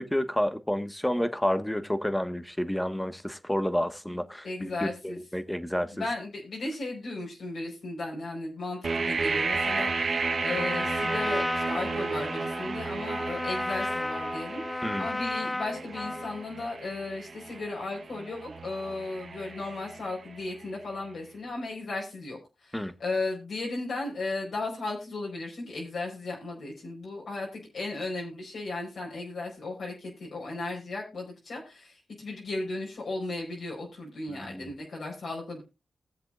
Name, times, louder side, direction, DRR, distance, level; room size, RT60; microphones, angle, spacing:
voice 1, 0.0-6.0 14.8-15.1 22.7-22.9 34.3-34.7, equal, 5° left, 1.5 m, -30 dB
voice 2, 4.4-5.2 5.9-35.6, left 2 dB, 75° left, 4.6 m, -36 dB
sound 1, 8.8-20.6, right 4 dB, 60° right, 1.1 m, -33 dB
Trumpet, 9.3-16.5, left 2 dB, 25° left, 0.6 m, -34 dB
20.0 x 7.6 x 2.5 m
cardioid pair, 65°, 0 cm